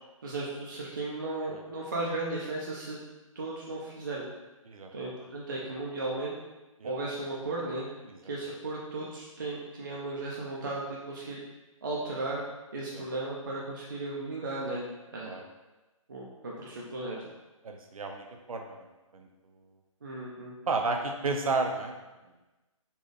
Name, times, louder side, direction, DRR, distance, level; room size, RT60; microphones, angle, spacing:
voice 1, 0.2-3.0 3.4-4.2 4.9-6.3 6.8-7.9 8.2-11.4 11.8-12.4 12.7-14.8 15.1-15.4 16.1-17.3 20.0-20.5, right 2 dB, 35° right, -4 dB, 0.4 m, -35 dB
voice 2, 17.6-18.9 19.1-19.3 20.7-22.0, right 3 dB, 90° right, 4 dB, 0.6 m, -32 dB
4.1 x 2.3 x 3.2 m, 1.1 s
hypercardioid pair, 175°, 18 cm